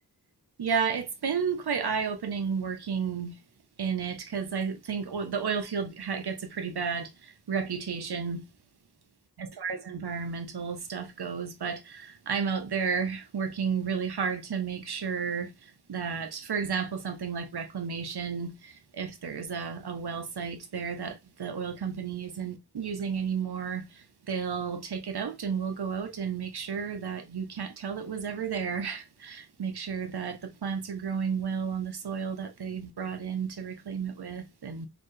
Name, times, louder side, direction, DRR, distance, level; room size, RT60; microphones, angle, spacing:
voice 1, 0.6-3.4 3.8-8.4 9.4-34.9, right 6 dB, 75° right, 0.9 m, -32 dB
4.5 x 2.9 x 3.2 m
wide cardioid pair, 50°, 39 cm